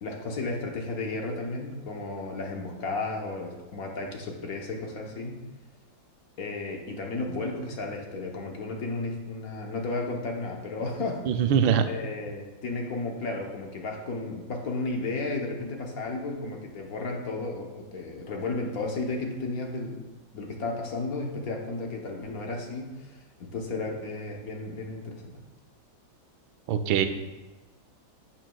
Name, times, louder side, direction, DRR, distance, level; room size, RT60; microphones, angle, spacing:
voice 1, 0.0-5.3 6.4-11.3 11.9-20.0 20.3-25.4, left 3 dB, 55° left, 1 dB, 1.3 m, -33 dB
voice 2, 11.3-11.9 26.7-27.1, right 8 dB, 85° right, 8 dB, 1.4 m, -22 dB
11.0 x 7.3 x 2.3 m, 1.1 s
omnidirectional pair, 2.1 m